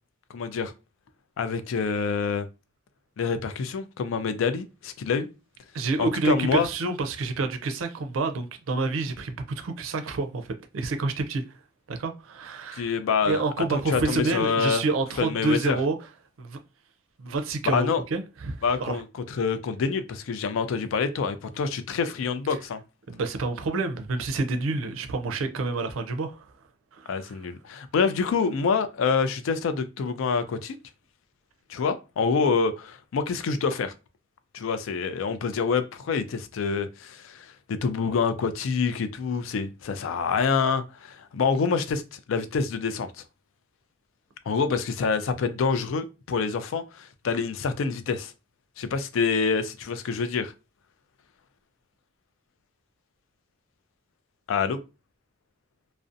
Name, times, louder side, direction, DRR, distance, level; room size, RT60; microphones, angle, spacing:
voice 1, 0.3-0.7 1.4-2.5 3.2-5.3 6.0-6.7 12.7-13.4 13.7-14.8 15.2-15.8 17.7-18.0 18.6-22.8 27.1-30.7 31.7-33.9 34.5-43.1 44.5-48.3 48.8-50.5 54.5-54.8, left 5 dB, 80° left, 0.4 m, -26 dB
voice 2, 5.7-11.4 11.9-12.9 13.2-16.0 16.4-16.6 17.2-19.0 23.1-26.5 26.9-27.4, right 3 dB, 85° right, 0.4 m, -28 dB
2.5 x 2.0 x 2.5 m
head